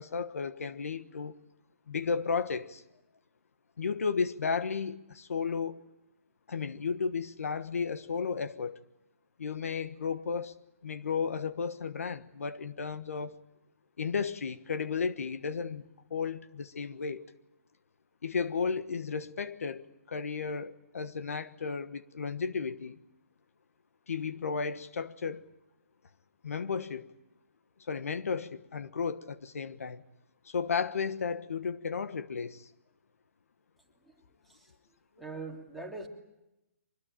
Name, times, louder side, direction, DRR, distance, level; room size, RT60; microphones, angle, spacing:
voice 1, 0.0-1.4 1.9-2.8 3.8-5.9 6.5-8.8 9.4-10.5 10.8-13.3 14.0-15.8 16.1-17.3 18.2-23.0 24.1-25.5 26.4-27.1 27.9-30.0 30.4-32.7, left 5 dB, 75° left, 1.3 m, -34 dB
voice 2, 35.2-36.1, right 3 dB, ahead, 3.0 m, -42 dB
24.5 x 20.5 x 8.9 m
hypercardioid pair, 150°, 8 cm